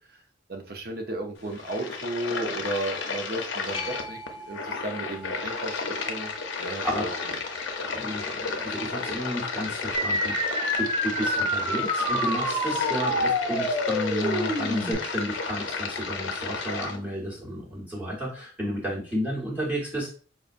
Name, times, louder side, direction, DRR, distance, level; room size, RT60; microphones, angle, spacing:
voice 1, 0.5-4.2 4.5-5.8 6.1-6.3 6.6-7.1, right 1 dB, 55° right, 4 dB, 0.7 m, -33 dB
sound 1, 1.4-17.0, left 4 dB, 80° left, 0.6 m, -33 dB
sound 2, 3.7-10.9 16.4-16.5, left 1 dB, 30° left, 0.8 m, -45 dB
voice 2, 6.6-7.1 7.9-20.1, equal, 10° right, -5 dB, 1.1 m, -32 dB
sound 3, 9.9-14.9, equal, 25° right, 0.8 m, -27 dB
5.0 x 2.2 x 2.5 m, 0.39 s
head